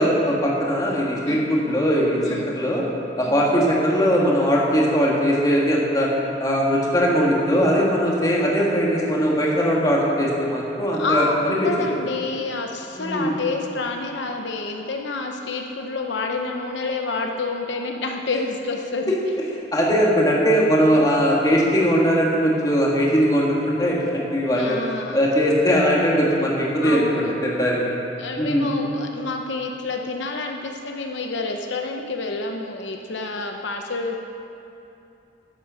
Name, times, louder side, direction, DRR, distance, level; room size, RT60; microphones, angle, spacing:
voice 1, 0.0-2.8 3.2-6.1 6.4-11.6 13.0-13.3 19.7-24.8 25.1-27.1 27.4-27.9 28.4-28.7, equal, 20° left, -4 dB, 1.8 m, -20 dB
voice 2, 2.2-2.5 3.2-3.4 10.9-19.2 24.5-25.3 26.8-27.4 28.2-34.2, left 3 dB, 70° left, 2 dB, 0.8 m, -28 dB
12.0 x 9.1 x 6.3 m, 2.7 s
head